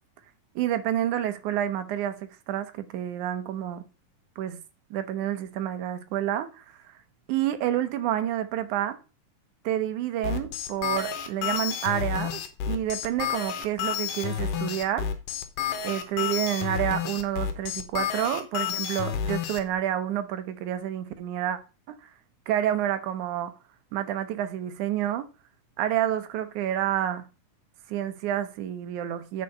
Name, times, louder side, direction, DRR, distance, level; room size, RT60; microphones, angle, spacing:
voice 1, 0.6-3.8 4.4-4.6 4.9-6.8 7.3-9.0 9.6-12.4 12.7-15.1 15.8-21.6 21.9-22.1 22.5-23.5 23.9-25.3 25.8-27.2 27.9-29.4, right 11 dB, 70° right, 2.2 m, -29 dB
sound 1, 10.2-19.6, left 8 dB, 90° left, 2.7 m, -30 dB
9.1 x 4.8 x 5.3 m
omnidirectional pair, 3.8 m